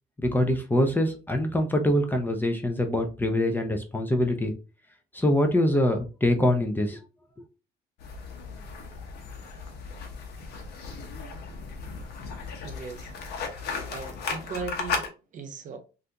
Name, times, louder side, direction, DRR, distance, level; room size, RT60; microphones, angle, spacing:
voice 1, 0.2-4.5 5.1-7.0, left 1 dB, 10° left, 0.5 m, -24 dB
sound 1, 8.0-15.1, left 4 dB, 70° left, 0.9 m, -36 dB
voice 2, 12.6-13.2 13.9-15.8, right 4 dB, 50° right, 0.8 m, -38 dB
3.3 x 2.5 x 2.7 m
cardioid pair, 110°, 17 cm